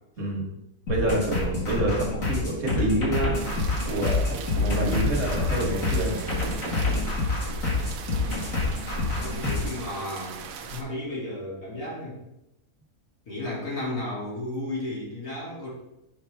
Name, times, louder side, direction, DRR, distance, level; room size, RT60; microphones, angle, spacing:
voice 1, 0.2-0.6 0.9-6.3 9.3-9.5, right 2 dB, 55° right, -1 dB, 1.8 m, -28 dB
sound 1, 0.9-9.8, left 3 dB, 65° left, 2.4 m, -27 dB
sound 2, 3.3-10.8, right 7 dB, 75° right, 1.0 m, -40 dB
voice 2, 9.2-12.2 13.3-15.7, left 1 dB, 80° left, -6 dB, 3.1 m, -34 dB
7.1 x 5.5 x 3.4 m, 0.89 s
omnidirectional pair, 1.5 m